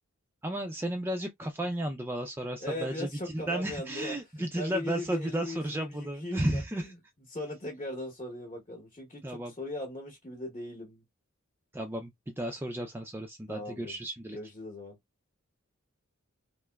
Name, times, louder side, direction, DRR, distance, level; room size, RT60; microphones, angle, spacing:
voice 1, 0.4-6.9 9.2-9.5 11.7-14.4, right 1 dB, 10° right, 0.3 m, -33 dB
voice 2, 2.6-6.6 7.3-11.0 13.5-13.9 14.3-15.0, left 1 dB, 30° left, 0.9 m, -39 dB
3.4 x 2.9 x 2.2 m
head